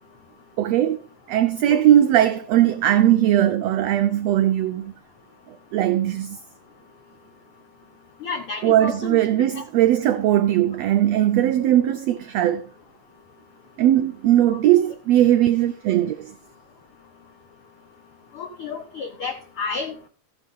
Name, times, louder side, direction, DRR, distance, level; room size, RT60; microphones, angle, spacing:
voice 1, 0.6-1.0 1.3-4.9 5.5-6.4 8.6-12.7 13.8-16.3, right 12 dB, 85° right, 1.4 m, -19 dB
voice 2, 8.2-9.2 9.6-9.7 14.5-14.6 18.4-20.1, left 5 dB, 75° left, 1.2 m, -31 dB
14.0 x 9.6 x 3.6 m
omnidirectional pair, 3.7 m